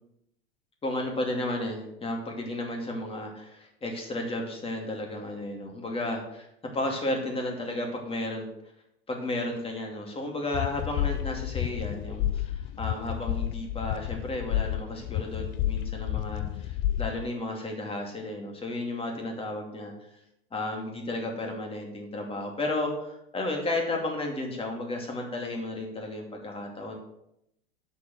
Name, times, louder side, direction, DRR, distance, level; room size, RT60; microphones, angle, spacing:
voice 1, 0.8-6.5 6.7-8.5 9.1-19.9 20.5-27.0, left 1 dB, 20° left, 1 dB, 2.6 m, -33 dB
sound 1, 10.5-17.3, left 13 dB, 40° left, 0.4 m, -31 dB
8.2 x 7.0 x 6.3 m, 0.80 s
hypercardioid pair, 110°, 31 cm